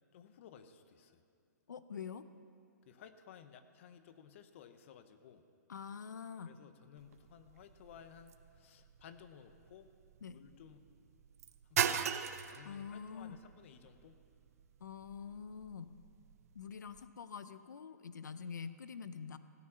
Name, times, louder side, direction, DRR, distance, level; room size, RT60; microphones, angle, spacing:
voice 1, 0.1-1.2 2.9-5.4 6.5-9.9 10.3-10.9 11.7-12.1 12.5-14.2, left 8 dB, 45° left, 10 dB, 0.9 m, -57 dB
voice 2, 1.7-2.2 5.7-6.5 10.2-10.4 12.6-13.4 14.8-15.9 16.5-19.4, left 6 dB, 90° left, 13 dB, 0.6 m, -46 dB
sound 1, 7.0-17.1, right 9 dB, 55° right, 0.6 m, -41 dB
16.5 x 9.5 x 5.6 m, 2.3 s
hypercardioid pair, 150°, 9 cm